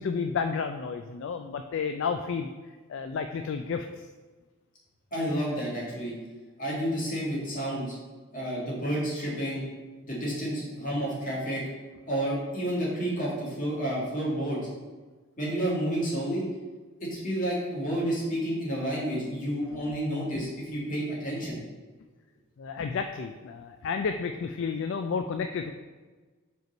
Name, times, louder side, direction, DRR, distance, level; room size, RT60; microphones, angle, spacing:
voice 1, 0.0-2.5 2.9-4.1 19.7-19.9 20.3-20.5 22.6-25.7, left 5 dB, 55° left, 7 dB, 0.3 m, -31 dB
voice 2, 5.1-6.1 6.6-8.0 8.3-9.6 10.1-11.6 12.1-14.6 15.4-16.4 17.0-21.6, right 1 dB, 35° left, -5 dB, 2.0 m, -30 dB
5.2 x 4.6 x 5.2 m, 1.3 s
head